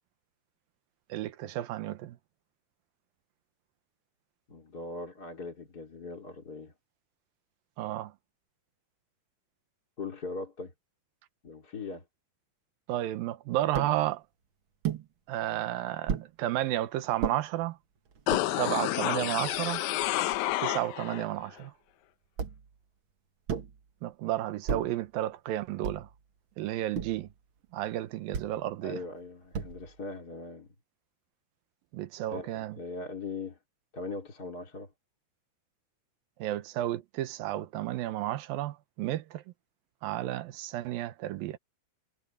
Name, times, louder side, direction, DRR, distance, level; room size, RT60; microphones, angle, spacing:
voice 1, 1.1-2.2 7.8-8.1 12.9-14.2 15.3-17.8 18.5-19.8 20.6-21.7 24.0-26.1 26.6-27.3 27.7-29.0 31.9-32.8 36.4-39.4 40.0-41.6, right 14 dB, 80° right, 2.8 m, -32 dB
voice 2, 4.5-6.7 10.0-10.7 11.4-12.0 28.8-30.7 32.3-33.6 33.9-34.9, left 3 dB, 25° left, 3.3 m, -40 dB
sound 1, 13.7-14.0 14.8-15.1 16.1-16.3 17.2-17.4 18.1-18.5 19.2-19.3 19.5-20.6 22.4-22.7 23.5-23.8 24.7-25.0 25.8-26.2 26.9-27.3 28.3-28.6 29.5-30.0, right 7 dB, 55° right, 1.5 m, -34 dB
sound 2, 18.3-21.3 21.6-21.7, left 16 dB, 80° left, 1.8 m, -29 dB
omnidirectional pair, 4.1 m